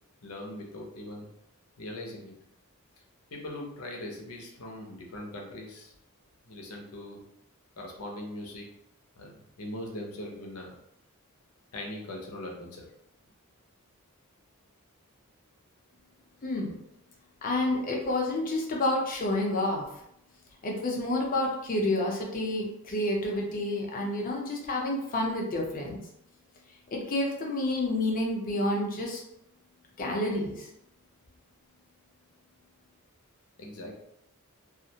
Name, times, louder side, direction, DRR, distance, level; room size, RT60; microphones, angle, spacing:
voice 1, 0.2-1.3 1.8-2.3 3.3-5.9 6.4-7.2 7.8-8.7 9.2-10.7 11.7-12.9 33.6-33.9, left 1 dB, 90° left, 0 dB, 0.6 m, -40 dB
voice 2, 16.4-16.7 17.4-19.8 20.6-26.0 26.9-29.2 30.0-30.6, left 1 dB, 40° left, -1 dB, 0.6 m, -29 dB
2.4 x 2.0 x 2.7 m, 0.78 s
head